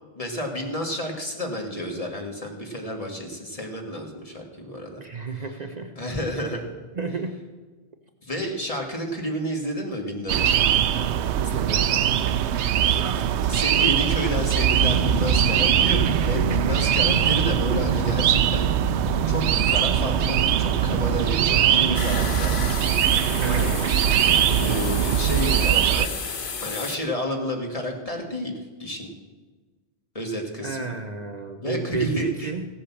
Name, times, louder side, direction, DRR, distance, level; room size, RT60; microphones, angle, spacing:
voice 1, 0.2-5.0 6.0-6.7 8.2-10.5 12.8-13.0 13.5-18.7 19.3-22.6 23.5-23.8 24.6-26.2 26.6-28.5 28.8-29.1 30.2-31.0 31.6-32.5, equal, 35° left, 1 dB, 1.8 m, -30 dB
voice 2, 5.0-5.9 7.0-7.3 11.4-11.9 12.8-13.2 23.3-23.9 30.6-32.7, right 4 dB, 45° right, 5 dB, 0.8 m, -32 dB
sound 1, 10.3-26.1, right 10 dB, 90° right, 0.9 m, -22 dB
sound 2, 14.8-24.8, right 4 dB, 70° right, 1.0 m, -29 dB
sound 3, 21.9-27.0, left 5 dB, 55° left, 1.1 m, -33 dB
16.0 x 8.4 x 7.1 m, 1.3 s
omnidirectional pair, 1.1 m